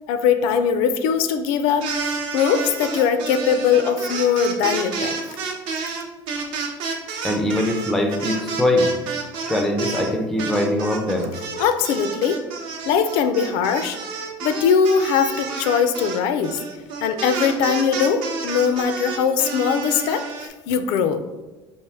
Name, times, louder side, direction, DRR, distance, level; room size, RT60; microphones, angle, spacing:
voice 1, 0.1-5.2 11.6-12.4 12.9-14.0 14.4-16.6 17.0-21.2, left 7 dB, 70° left, 9 dB, 0.4 m, -21 dB
sound 1, 1.7-10.1 10.4-20.5, right 5 dB, 60° right, 0.7 m, -30 dB
voice 2, 7.2-8.9 9.5-11.3, left 1 dB, ahead, 3 dB, 0.3 m, -22 dB
4.7 x 2.5 x 3.4 m, 1.1 s
cardioid pair, 165°, 10 cm